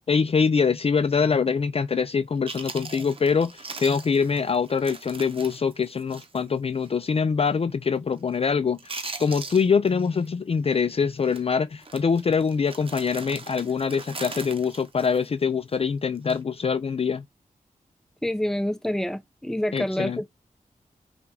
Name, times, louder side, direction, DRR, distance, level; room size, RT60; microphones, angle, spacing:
voice 1, 0.1-17.2 19.7-20.2, left 5 dB, 45° left, 0.4 m, -24 dB
Chewing mastication, 2.1-2.2 2.5-6.5 6.8-6.9 7.4-7.7 8.0-8.5 8.7-10.3 10.5-10.8 11.2-11.4 11.8-15.8 16.2-16.4, right 3 dB, 40° right, 0.8 m, -40 dB
voice 2, 18.2-20.2, left 1 dB, 5° left, 0.7 m, -27 dB
5.8 x 2.3 x 3.3 m
wide cardioid pair, 95°, 14 cm